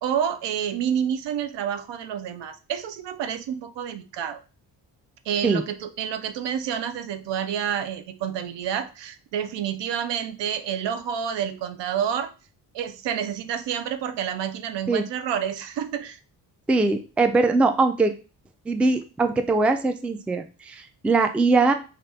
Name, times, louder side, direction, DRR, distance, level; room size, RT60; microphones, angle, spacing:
voice 1, 0.0-4.4 5.3-12.3 12.7-16.2, right 8 dB, 70° right, 9 dB, 0.5 m, -29 dB
voice 2, 16.7-18.1 18.7-21.7, right 3 dB, 5° right, 7 dB, 0.3 m, -21 dB
2.7 x 2.5 x 3.3 m, 0.34 s
supercardioid pair, 45°, 45 cm